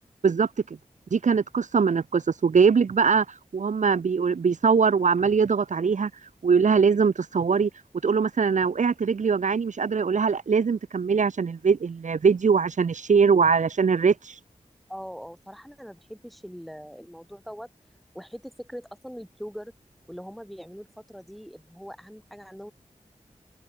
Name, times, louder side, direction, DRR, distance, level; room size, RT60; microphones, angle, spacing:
voice 1, 1.1-6.1 6.4-7.7 8.0-14.4, right 5 dB, 70° right, 0.7 m, -22 dB
voice 2, 14.9-17.7 18.1-19.7 20.1-22.7, equal, ahead, 3.2 m, -41 dB
wide cardioid pair, 85°, 13 cm